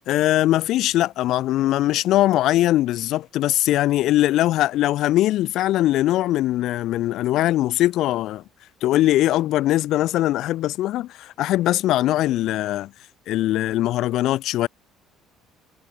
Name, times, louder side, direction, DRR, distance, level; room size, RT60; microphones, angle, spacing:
voice 1, 0.1-8.4 8.8-12.9 13.3-14.7, left 14 dB, 70° left, 0.3 m, -21 dB
cardioid pair, 95°, 0 cm